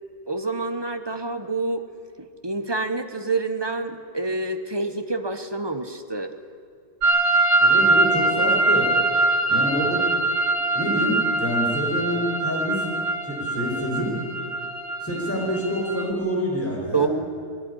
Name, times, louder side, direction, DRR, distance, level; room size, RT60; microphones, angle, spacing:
voice 1, 0.3-1.8 2.2-6.3 16.9-17.1, right 3 dB, 20° right, 8 dB, 1.0 m, -27 dB
sound 1, 7.0-16.1, right 2 dB, 80° right, 3.7 m, -23 dB
voice 2, 7.6-8.9 9.5-10.1 10.7-12.8 13.2-14.2 15.0-17.1, equal, 10° left, -2 dB, 5.7 m, -27 dB
20.5 x 16.5 x 10.0 m, 2.4 s
omnidirectional pair, 1.8 m